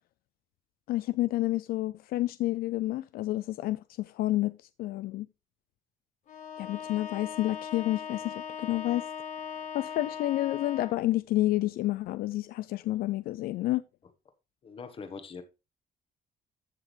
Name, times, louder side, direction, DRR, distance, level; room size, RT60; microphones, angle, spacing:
voice 1, 0.9-5.3 6.6-9.0 9.7-13.8, left 16 dB, 75° left, 0.4 m, -29 dB
Bowed string instrument, 6.3-11.1, left 8 dB, 55° left, 1.6 m, -39 dB
voice 2, 14.6-15.4, left 5 dB, 35° left, 1.4 m, -42 dB
14.0 x 5.9 x 3.3 m
cardioid pair, 155°, 15 cm